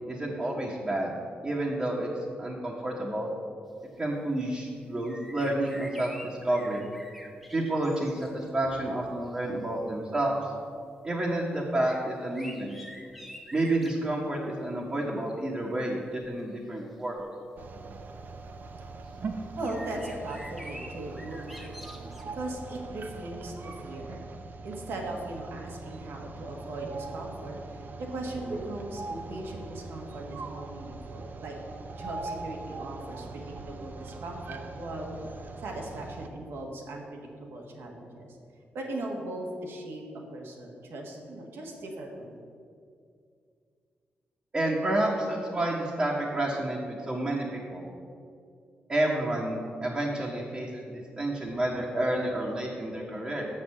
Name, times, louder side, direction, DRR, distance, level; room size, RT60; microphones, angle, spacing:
voice 1, 0.1-1.1 1.4-2.1 2.4-3.3 4.0-6.8 7.5-10.5 11.0-12.8 13.5-17.2 44.5-47.8 48.9-53.5, right 1 dB, 25° right, -4 dB, 1.2 m, -30 dB
sound 1, 5.0-8.5 9.2-9.4 11.8-14.0 16.0-16.4 17.2-17.3 19.0-19.2 19.6-22.2, equal, ahead, 1.1 m, -46 dB
sound 2, 17.6-36.3, right 3 dB, 55° right, 0.7 m, -41 dB
voice 2, 19.6-24.2 24.6-31.5 31.9-35.2 35.6-38.3 38.7-40.0 40.3-42.3, right 1 dB, 85° right, 0 dB, 1.6 m, -39 dB
6.5 x 6.4 x 7.4 m, 2.3 s
cardioid pair, 110°, 4 cm